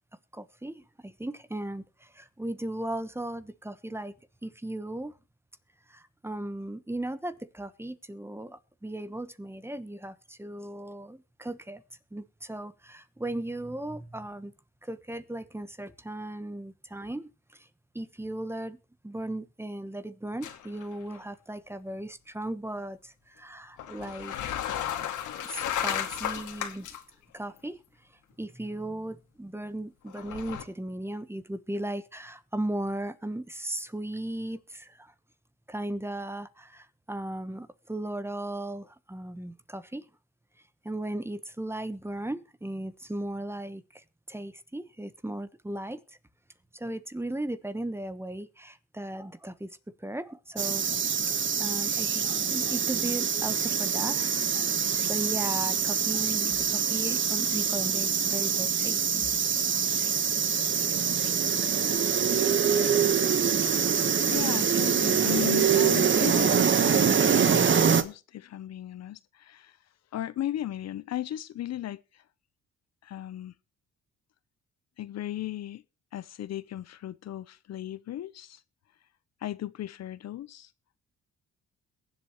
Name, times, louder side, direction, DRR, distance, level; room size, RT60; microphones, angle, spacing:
voice 1, 0.3-4.1 4.4-5.1 5.9-11.8 12.1-14.5 14.8-17.7 17.9-18.8 19.0-24.9 25.4-26.9 27.3-27.8 28.4-35.1 35.7-40.0 40.8-46.2 46.7-51.0 51.6-59.3, right 1 dB, 10° right, 1.1 m, -37 dB
sound 1, 20.4-20.9 21.1-21.2 23.8-27.0 27.6-27.7 30.1-30.6, left 10 dB, 80° left, 2.2 m, -33 dB
sound 2, 50.6-68.0, right 7 dB, 40° right, 1.2 m, -25 dB
voice 2, 64.3-69.7 70.1-72.0 73.0-73.5 75.0-75.8 76.1-78.6 79.4-80.7, left 13 dB, 60° left, 0.7 m, -36 dB
22.5 x 7.9 x 3.0 m
cardioid pair, 90°, 30 cm